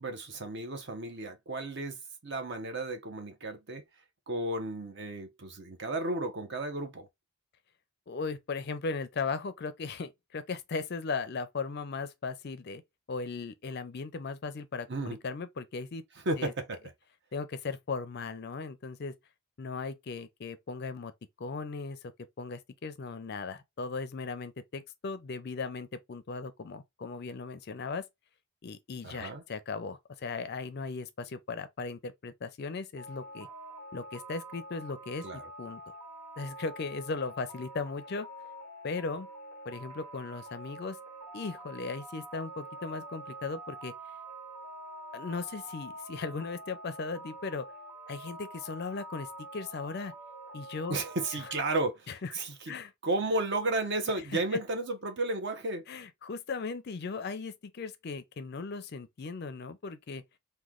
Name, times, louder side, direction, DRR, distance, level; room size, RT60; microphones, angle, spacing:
voice 1, 0.0-3.8 4.3-7.1 14.9-15.2 16.3-16.8 29.0-29.4 35.2-35.4 50.9-52.8 53.0-55.8, right 2 dB, 50° right, 0.7 m, -33 dB
voice 2, 8.1-12.8 13.1-16.0 16.4-16.5 17.3-19.1 19.6-21.1 21.4-22.1 22.4-28.0 28.6-33.5 33.9-35.8 36.4-38.3 38.8-39.3 39.7-41.0 41.3-43.9 45.1-47.7 48.1-50.1 50.5-51.0 52.1-52.3 52.7-52.9 55.9-60.2, left 4 dB, 45° left, 0.4 m, -37 dB
sound 1, 33.0-51.8, right 1 dB, 80° right, 1.3 m, -46 dB
3.1 x 2.2 x 3.6 m
head